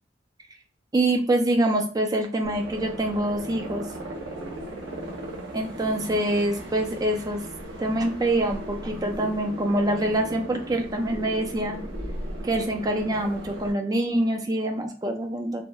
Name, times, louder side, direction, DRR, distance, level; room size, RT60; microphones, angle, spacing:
voice 1, 0.9-3.8 5.5-7.4 7.8-11.8 12.4-15.6, right 1 dB, 20° right, 3 dB, 0.4 m, -25 dB
sound 1, 2.4-13.7, right 1 dB, 80° right, 0.6 m, -37 dB
2.7 x 2.1 x 2.3 m, 0.41 s
head